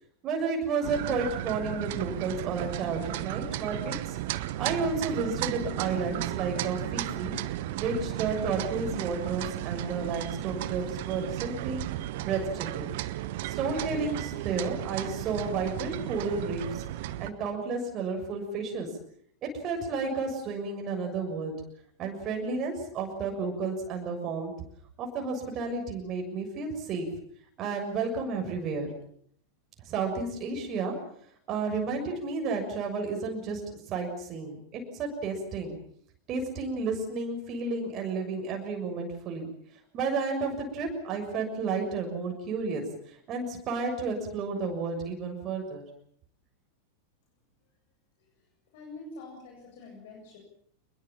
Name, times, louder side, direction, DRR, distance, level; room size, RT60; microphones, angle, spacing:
voice 1, 0.2-4.2 4.6-7.3 7.7-11.8 12.2-12.9 13.4-18.9 19.4-21.5 22.0-24.5 25.0-27.1 27.6-28.9 29.8-30.9 31.5-35.8 36.3-39.5 39.9-45.8, right 4 dB, 35° right, 3 dB, 6.8 m, -32 dB
sound 1, 0.8-17.3, right 14 dB, 50° right, 1.2 m, -34 dB
voice 2, 48.7-50.4, left 2 dB, 50° left, 0 dB, 8.0 m, -45 dB
27.5 x 22.0 x 7.4 m, 0.66 s
figure-of-eight pair, 90°, 0 cm